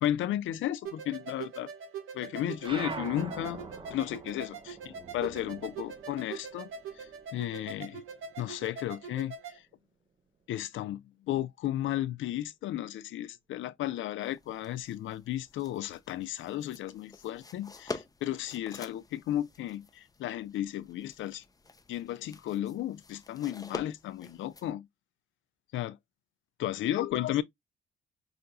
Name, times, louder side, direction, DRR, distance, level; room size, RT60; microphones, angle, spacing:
voice 1, 0.0-1.7 2.1-3.6 3.9-8.0 8.4-9.6 10.5-21.4 21.9-24.9 25.7-26.0 26.6-27.4, left 12 dB, 75° left, 0.6 m, -34 dB
sound 1, 0.8-9.6, right 6 dB, 85° right, 1.3 m, -43 dB
sound 2, 2.6-7.5 7.8-9.2, right 4 dB, 25° right, 0.8 m, -44 dB
sound 3, 14.2-24.7, left 3 dB, 20° left, 0.7 m, -47 dB
5.8 x 2.6 x 2.2 m
cardioid pair, 90°, 20 cm